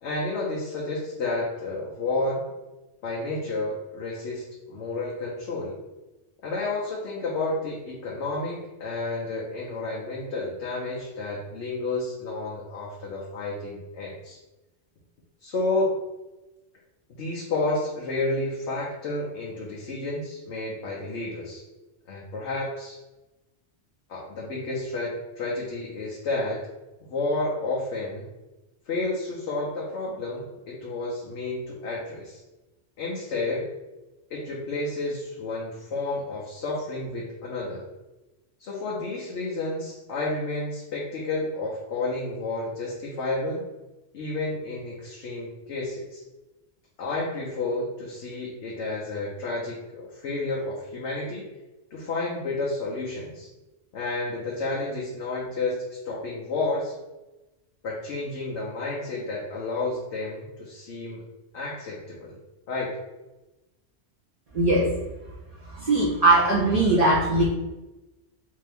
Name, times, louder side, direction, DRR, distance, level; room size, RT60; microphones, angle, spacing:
voice 1, 0.0-2.5 3.0-5.8 6.4-14.4 15.4-15.9 17.1-21.6 22.1-23.0 24.1-26.7 27.1-28.3 28.9-32.4 33.0-33.7 34.3-37.9 38.6-43.6 44.1-46.2 47.0-51.5 51.9-53.5 53.9-56.9 57.8-61.2 61.5-62.4 62.7-63.0, left 2 dB, 80° left, -4 dB, 1.0 m, -31 dB
voice 2, 64.5-64.9 65.6-67.4, right 2 dB, 35° right, -8 dB, 0.9 m, -20 dB
3.5 x 2.8 x 3.4 m, 1.0 s
omnidirectional pair, 1.1 m